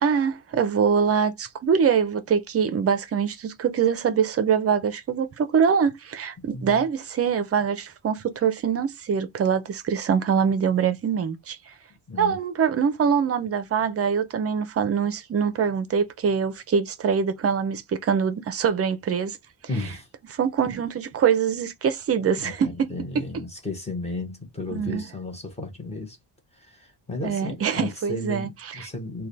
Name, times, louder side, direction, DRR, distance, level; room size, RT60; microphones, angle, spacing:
voice 1, 0.0-11.6 12.2-19.4 20.3-23.2 24.7-25.0 27.2-28.9, right 7 dB, 35° right, 0.4 m, -24 dB
voice 2, 6.5-6.8 12.1-12.4 19.7-20.1 22.4-22.5 22.9-26.2 26.6-29.3, left 2 dB, 15° left, 0.8 m, -34 dB
3.1 x 2.2 x 3.9 m
wide cardioid pair, 180°, 42 cm